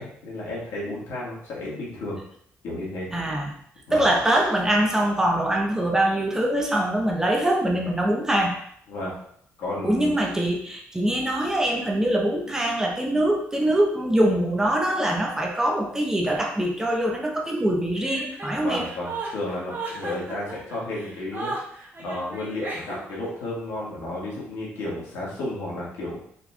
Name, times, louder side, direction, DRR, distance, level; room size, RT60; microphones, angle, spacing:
voice 1, 0.0-2.2 2.6-3.1 3.9-4.1 8.9-9.2 9.6-10.1 18.6-21.5 22.0-26.2, left 1 dB, 80° left, -5 dB, 1.6 m, -32 dB
voice 2, 3.1-3.5 3.9-8.5 9.8-18.9, right 1 dB, 10° right, 0 dB, 0.7 m, -23 dB
Chuckle chortle, 18.0-23.3, right 3 dB, 40° right, 1.4 m, -35 dB
4.2 x 4.1 x 2.3 m, 0.67 s
cardioid pair, 105°, 5 cm